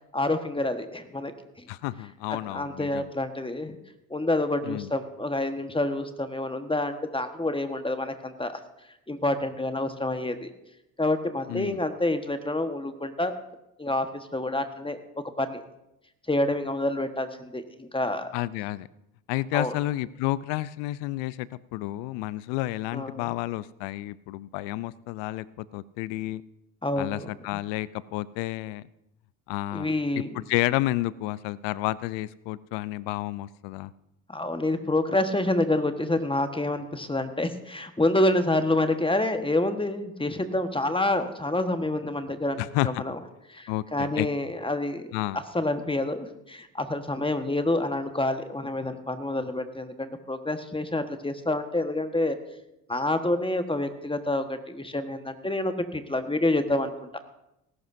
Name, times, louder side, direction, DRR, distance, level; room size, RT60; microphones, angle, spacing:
voice 1, 0.1-1.3 1.6-1.7 2.5-3.8 4.1-8.6 9.1-10.5 11.0-13.3 13.8-15.0 15.4-15.6 16.3-18.3 19.5-19.7 22.9-23.3 26.8-27.3 29.7-30.3 34.3-43.2 43.5-45.1 45.3-52.4 52.9-57.2, left 1 dB, 10° left, 8 dB, 1.4 m, -28 dB
voice 2, 1.7-3.1 4.6-4.9 11.5-11.8 18.3-18.9 19.3-26.4 27.0-28.8 29.5-33.9 42.6-43.0 43.7-44.3 45.1-45.4, left 17 dB, 65° left, 19 dB, 0.6 m, -31 dB
19.0 x 11.5 x 2.7 m, 0.84 s
hypercardioid pair, 60°, 46 cm